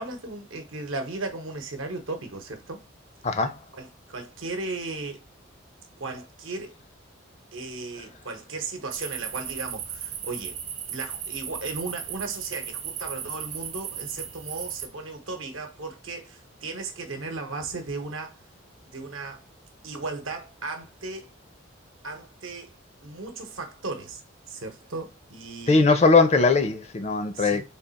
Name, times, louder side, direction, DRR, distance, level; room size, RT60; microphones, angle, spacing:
voice 1, 0.0-2.8 3.7-5.2 6.0-6.8 7.5-10.6 10.9-18.4 18.9-19.4 19.8-21.3 22.0-22.7 23.0-24.2 24.5-25.9 27.3-27.6, right 3 dB, 80° right, 0.9 m, -36 dB
voice 2, 3.2-3.5 25.7-27.6, left 3 dB, 30° left, 0.4 m, -20 dB
sound 1, 8.9-14.9, right 8 dB, 30° right, 0.5 m, -36 dB
3.6 x 2.3 x 4.0 m
head